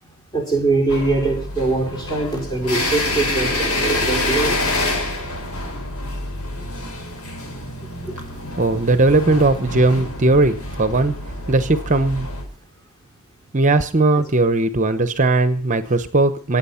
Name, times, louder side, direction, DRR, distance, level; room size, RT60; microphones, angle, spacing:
voice 1, 0.3-4.9 8.0-8.1, right 3 dB, 20° left, 1 dB, 5.0 m, -22 dB
sound 1, 0.9-12.4, left 2 dB, 75° left, 5.9 m, -26 dB
voice 2, 8.6-11.1 11.5-12.3 13.5-16.6, right 2 dB, 35° right, 12 dB, 0.9 m, -18 dB
24.0 x 8.8 x 5.7 m, 0.43 s
head